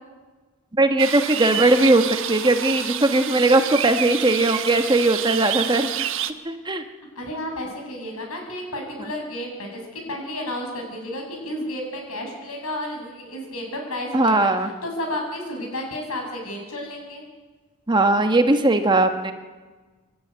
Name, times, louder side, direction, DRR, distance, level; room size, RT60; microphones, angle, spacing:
voice 1, 0.8-5.9 6.4-6.8 14.1-14.7 17.9-19.3, right 2 dB, 20° right, 7 dB, 1.2 m, -19 dB
sound 1, 1.0-6.3, right 10 dB, 60° right, 1.1 m, -28 dB
voice 2, 7.1-14.5 14.8-17.2, left 1 dB, 80° left, 2 dB, 6.9 m, -32 dB
26.5 x 12.5 x 9.5 m, 1.3 s
head